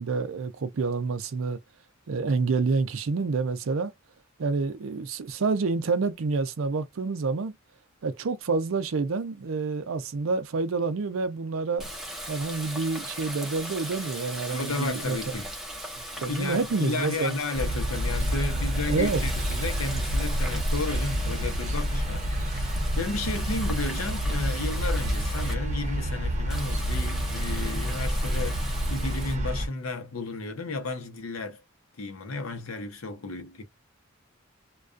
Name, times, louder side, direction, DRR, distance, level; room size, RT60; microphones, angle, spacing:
voice 1, 0.0-1.6 2.1-3.9 4.4-7.5 8.0-11.9 12.3-15.2 16.2-17.4 18.9-19.2, right 4 dB, 70° right, 0.5 m, -28 dB
Water tap faucet, 11.8-25.5 26.5-29.4, equal, ahead, 0.6 m, -37 dB
voice 2, 14.5-15.5 16.2-31.6 32.0-33.6, left 3 dB, 90° left, 0.7 m, -33 dB
sound 1, 17.5-29.7, equal, 35° right, 0.8 m, -28 dB
2.3 x 2.3 x 2.4 m
head